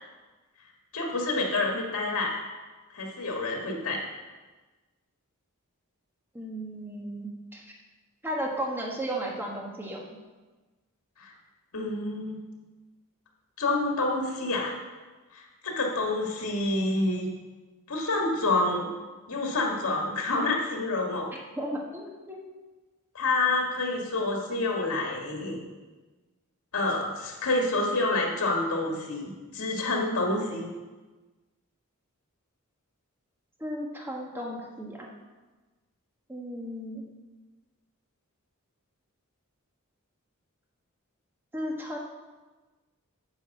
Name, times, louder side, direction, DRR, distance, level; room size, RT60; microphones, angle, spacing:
voice 1, 0.9-2.4 2.9-4.0 11.2-11.3 11.7-12.4 13.6-14.7 15.3-17.3 17.9-18.9 19.3-21.3 23.1-25.6 26.7-30.7, left 2 dB, 85° left, 0 dB, 1.7 m, -28 dB
voice 2, 6.3-7.6 8.2-10.1 21.6-22.4 33.6-35.1 36.3-37.0 41.5-42.0, right 1 dB, 10° right, -1 dB, 1.4 m, -34 dB
8.9 x 5.1 x 7.1 m, 1.2 s
head